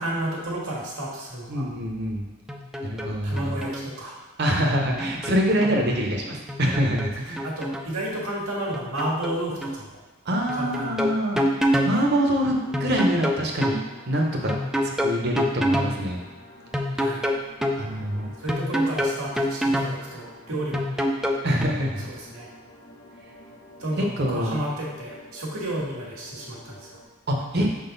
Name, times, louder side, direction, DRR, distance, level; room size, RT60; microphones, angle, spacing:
voice 1, 0.0-1.7 3.2-4.2 5.6-5.8 7.4-9.9 10.5-11.1 17.0-17.2 18.4-20.9 22.1-22.5 23.8-27.0, right 1 dB, 85° right, -4 dB, 1.8 m, -31 dB
voice 2, 1.5-2.2 2.8-3.5 4.4-7.4 10.3-13.8 14.1-14.5 14.8-16.2 17.7-18.3 21.4-22.0 24.0-24.6 27.3-27.7, equal, 50° right, 1 dB, 0.9 m, -25 dB
sound 1, 2.5-3.1 3.4-3.9 4.7-5.8 6.5-7.9 8.7-9.4 9.6-9.8 10.5-11.9 12.7-13.8 14.5-15.9 16.7-17.8 18.5-19.9 20.7-21.6, equal, ahead, 0.3 m, -26 dB
sound 2, 12.3-27.0, left 1 dB, 65° left, 1.1 m, -48 dB
6.2 x 3.9 x 4.0 m, 1.2 s
head